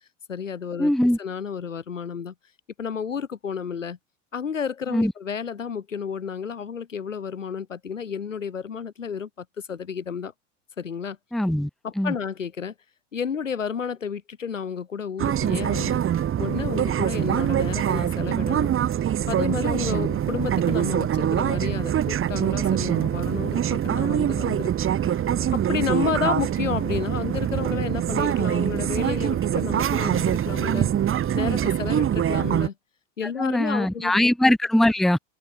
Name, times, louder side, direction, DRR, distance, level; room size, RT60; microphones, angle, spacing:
voice 1, 0.3-0.9 1.2-2.3 2.8-4.0 4.3-10.3 10.8-11.2 11.8-12.7 13.1-16.0 16.4-18.7 19.3-24.7 25.5-30.9 31.3-32.7 33.2-34.3, left 6 dB, 90° left, 4.5 m, -31 dB
voice 2, 0.8-1.2 4.9-5.1 11.3-11.7 12.0-12.1 33.4-35.2, left 1 dB, ahead, 0.9 m, -21 dB
sound 1, 15.2-32.7, right 10 dB, 35° right, 2.8 m, -24 dB
open air
hypercardioid pair, 80°, 37 cm